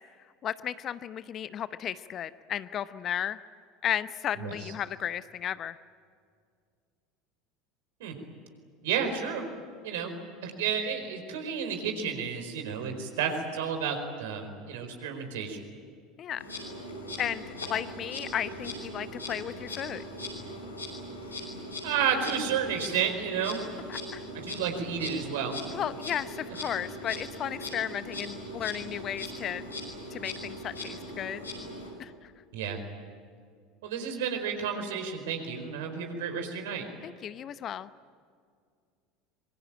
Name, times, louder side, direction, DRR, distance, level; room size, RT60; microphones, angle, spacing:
voice 1, 0.4-3.4 3.8-5.8 16.2-16.4 17.2-20.0 23.9-24.2 25.7-29.6 30.1-31.4 32.0-32.3 37.0-37.9, left 10 dB, 40° left, 15 dB, 0.8 m, -34 dB
voice 2, 8.8-9.4 9.8-10.1 10.4-15.6 21.8-23.6 24.4-25.6 32.5-32.8 33.8-36.9, right 7 dB, 65° right, 5 dB, 4.6 m, -31 dB
Insect, 16.4-31.9, left 1 dB, 85° left, 6.3 m, -40 dB
25.5 x 23.5 x 9.0 m, 2.2 s
figure-of-eight pair, 70°, 0 cm